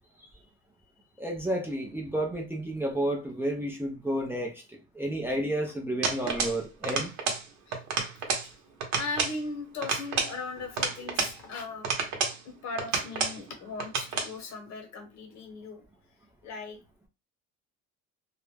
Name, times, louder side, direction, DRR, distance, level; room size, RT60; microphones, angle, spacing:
voice 1, 1.2-7.1, right 1 dB, 5° right, 0.5 m, -31 dB
sound 1, 6.0-6.6 6.8-7.4 7.7-8.5 8.8-9.4 9.8-11.4 11.8-12.4 12.8-13.4 13.8-14.3, right 5 dB, 60° right, 0.8 m, -30 dB
voice 2, 9.0-11.9 12.4-15.8 16.4-16.8, left 3 dB, 60° left, 1.0 m, -38 dB
2.3 x 2.1 x 3.2 m
cardioid pair, 115°, 31 cm